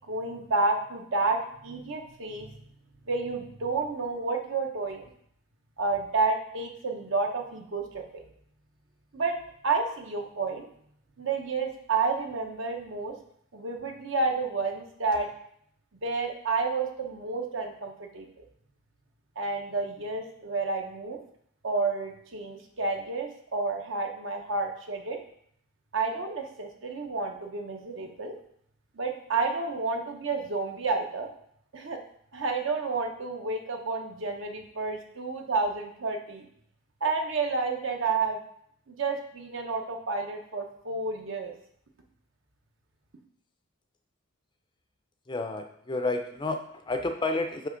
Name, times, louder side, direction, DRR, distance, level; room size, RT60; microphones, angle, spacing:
voice 1, 0.1-2.5 3.1-5.1 5.8-8.2 9.1-9.4 9.6-10.7 11.2-13.1 13.5-15.3 16.0-18.3 19.4-21.2 21.6-25.2 25.9-28.3 28.9-31.3 31.7-32.0 32.3-36.5 37.0-38.4 38.9-41.5, right 3 dB, 60° right, 3 dB, 0.9 m, -30 dB
voice 2, 45.3-47.7, left 2 dB, 20° left, 6 dB, 0.5 m, -30 dB
7.6 x 3.3 x 5.0 m, 0.67 s
head